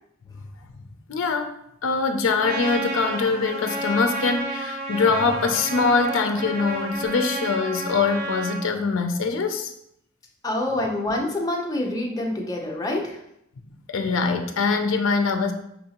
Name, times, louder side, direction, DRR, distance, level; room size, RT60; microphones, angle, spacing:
voice 1, 1.1-1.5 1.8-9.7 13.9-15.5, left 4 dB, 65° left, 6 dB, 0.4 m, -23 dB
Trumpet, 2.4-8.6, right 1 dB, 45° right, 0.8 m, -31 dB
voice 2, 10.4-13.2, left 1 dB, 15° left, -1 dB, 0.6 m, -26 dB
5.4 x 2.6 x 2.8 m, 0.76 s
head